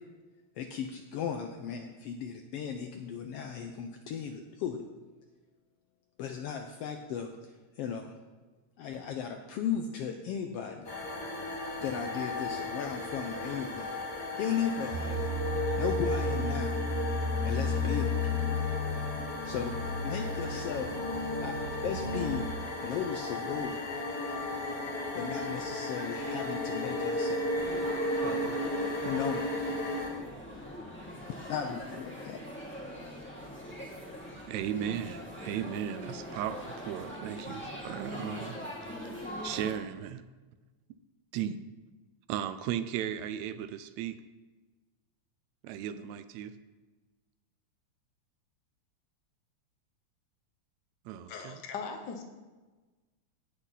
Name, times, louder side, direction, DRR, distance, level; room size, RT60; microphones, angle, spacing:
voice 1, 0.5-4.8 6.2-8.1 8.8-10.9 11.8-14.0 14.4-15.3 15.8-16.8 17.1-18.3 19.4-19.8 20.0-22.5 22.8-23.8 25.1-27.6 28.2-28.6 29.0-29.7 31.3-32.4, left 7 dB, 80° left, 5 dB, 1.4 m, -36 dB
sound 1, 10.8-30.1, left 1 dB, 35° left, 2.1 m, -35 dB
sound 2, 14.9-22.5, left 3 dB, 65° right, 2.0 m, -33 dB
Laughter / Chatter / Crowd, 27.6-39.7, equal, 5° left, 1.2 m, -42 dB
voice 2, 34.5-38.6 39.0-39.1 39.4-40.2 41.3-41.6 42.3-44.2 45.6-46.6 51.1-51.6, right 10 dB, 80° right, 12 dB, 1.8 m, -36 dB
voice 3, 51.3-52.2, left 5 dB, 60° left, 4 dB, 1.1 m, -39 dB
17.5 x 6.1 x 4.1 m, 1.3 s
omnidirectional pair, 3.3 m